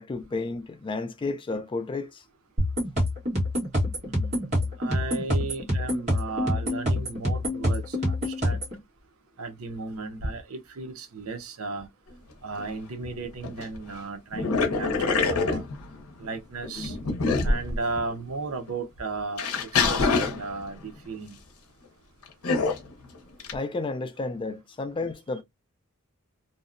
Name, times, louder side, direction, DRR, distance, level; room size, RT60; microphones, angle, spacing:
voice 1, 0.0-2.2 23.5-25.4, left 3 dB, 25° left, 0.3 m, -32 dB
sound 1, 2.6-8.8, left 1 dB, 35° right, 1.2 m, -26 dB
voice 2, 4.0-8.6 9.4-11.9 12.4-15.7 16.2-17.0 17.4-19.5 19.9-21.4, right 3 dB, 70° right, 0.6 m, -35 dB
sound 2, 12.6-12.7 13.0-13.8 14.3-16.2 16.6-18.1 18.7-18.8 19.4-20.9 22.4-22.9 23.4-23.6, left 4 dB, 75° left, 0.7 m, -25 dB
2.6 x 2.0 x 2.4 m
head